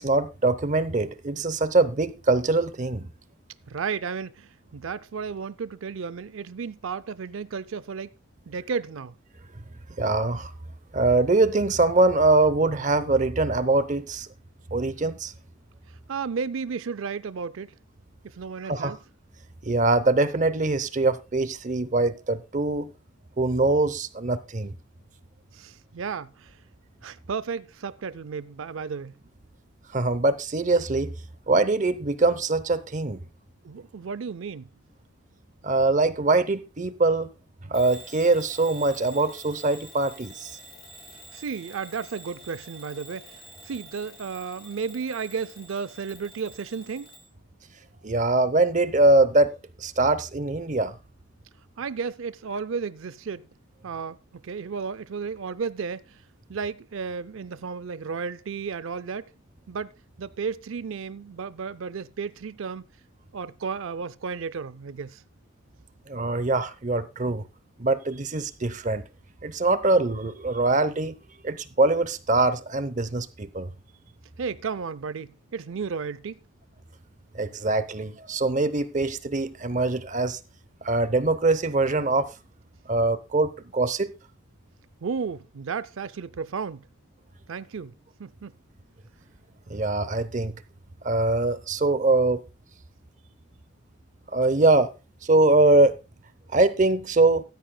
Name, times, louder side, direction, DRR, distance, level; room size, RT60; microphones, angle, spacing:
voice 1, 0.0-3.1 10.0-10.5 10.9-14.3 14.7-15.3 18.7-18.9 19.7-22.9 23.4-24.7 29.9-31.1 31.5-33.2 35.6-37.3 37.7-40.6 48.0-51.0 66.1-67.4 67.8-69.0 69.4-71.2 71.4-73.7 77.3-80.4 80.8-82.3 82.9-84.1 89.7-90.5 91.0-92.4 94.3-94.9 95.2-96.0 96.5-97.4, right 2 dB, 35° right, 0.7 m, -23 dB
voice 2, 3.7-8.1 8.5-9.1 15.9-17.7 18.2-19.0 25.5-26.6 27.0-29.1 33.6-34.7 41.3-43.4 43.6-47.1 51.8-53.5 53.8-54.2 54.4-56.2 56.5-59.3 59.7-62.8 63.3-65.2 74.4-76.4 85.0-86.9 87.5-87.9 88.2-88.5, right 5 dB, 70° right, 0.4 m, -33 dB
Bell / Alarm, 37.7-47.3, equal, 45° left, 4.0 m, -47 dB
15.0 x 13.0 x 2.2 m
head